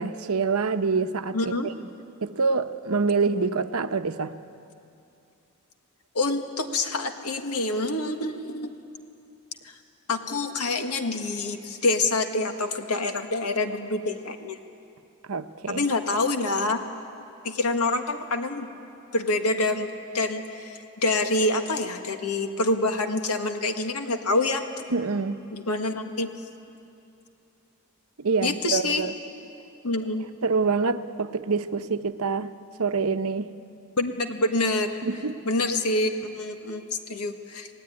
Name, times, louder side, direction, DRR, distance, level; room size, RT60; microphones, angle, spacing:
voice 1, 0.0-1.7 2.2-4.3 15.3-15.8 24.9-25.4 28.2-29.1 30.4-32.5 32.8-33.5 35.0-35.4, right 4 dB, 70° right, 9 dB, 0.9 m, -26 dB
voice 2, 1.3-1.7 6.1-8.7 9.6-9.7 10.1-14.6 15.7-16.8 17.4-18.7 19.1-24.8 25.5-26.3 28.4-29.0 29.8-30.3 34.0-34.9 35.4-37.7, left 2 dB, 85° left, 6 dB, 1.7 m, -26 dB
26.5 x 18.0 x 9.6 m, 2.7 s
head